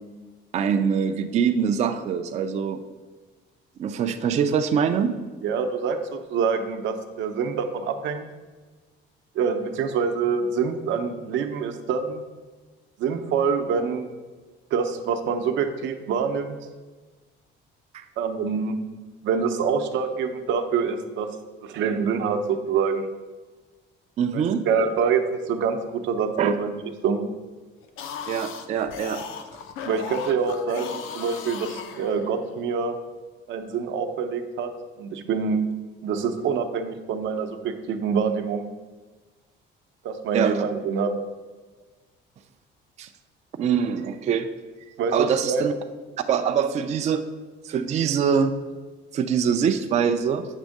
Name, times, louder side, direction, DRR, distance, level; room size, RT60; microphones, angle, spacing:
voice 1, 0.5-2.8 3.8-5.1 17.9-18.0 24.2-24.6 26.4-26.5 28.3-29.2 40.3-40.5 43.0-43.1 43.6-44.5 45.1-45.7 46.3-47.2 47.7-48.5 49.1-50.5, right 7 dB, 35° right, 7 dB, 0.4 m, -23 dB
voice 2, 5.4-8.2 9.3-12.2 13.0-14.1 14.7-16.6 18.2-18.8 19.2-21.3 21.6-23.1 24.3-26.7 27.0-27.2 29.8-33.0 33.5-34.7 35.0-35.7 36.0-38.6 40.0-41.1 45.0-45.6, right 6 dB, 70° right, 7 dB, 0.7 m, -26 dB
sound 1, 27.8-32.6, left 7 dB, 85° left, 0.7 m, -37 dB
8.2 x 3.5 x 6.4 m, 1.3 s
cardioid pair, 180°, 20 cm